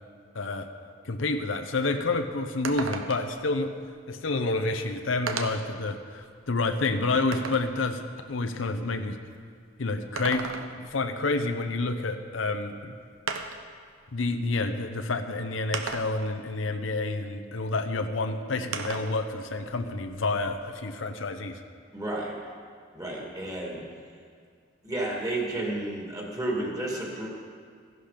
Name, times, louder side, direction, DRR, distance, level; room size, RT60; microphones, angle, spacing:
voice 1, 0.3-0.7 1.0-3.7 4.1-9.2 9.8-12.9 14.1-21.6, left 3 dB, 70° left, 7 dB, 0.8 m, -29 dB
sound 1, 1.7-1.8 2.1-2.2 2.6-3.4 4.5-4.6 5.3-5.7 6.3-7.7 9.9-10.9 12.4-12.5 13.3-13.7 14.7-14.8 15.7-16.4 18.7-19.2 19.6-20.7, right 4 dB, 90° right, 0.9 m, -35 dB
voice 2, 21.9-22.3 22.9-23.8 24.8-27.3, right 1 dB, 20° right, -2 dB, 2.5 m, -31 dB
15.0 x 11.5 x 5.1 m, 2.1 s
head